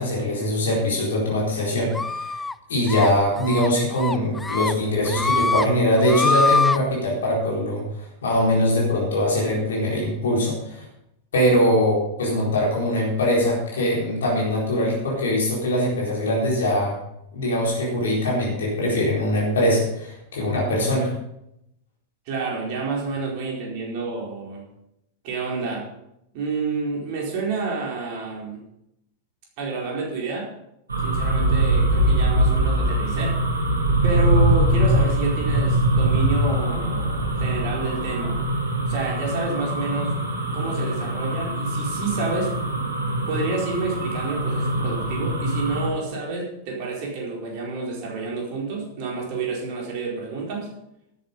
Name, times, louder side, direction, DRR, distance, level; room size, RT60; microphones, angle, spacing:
voice 1, 0.0-1.9 2.7-7.8 8.2-10.8 11.3-17.0 17.3-21.1, left 1 dB, 65° left, -4 dB, 4.4 m, -22 dB
sound 1, 1.9-2.5 2.9-3.1 3.4-3.7 4.0-4.7 5.1-5.7 6.0-6.8, left 3 dB, 10° left, 0.4 m, -23 dB
voice 2, 22.3-24.6 25.2-25.8 26.3-28.6 29.6-30.5 31.0-33.4 34.0-38.4 38.9-40.1 40.5-42.5 43.3-50.7, right 3 dB, 45° right, -2 dB, 4.5 m, -29 dB
sound 2, 30.9-45.9, right 1 dB, 75° right, 2.3 m, -22 dB
13.0 x 9.3 x 5.4 m, 0.81 s
figure-of-eight pair, 90°, 0 cm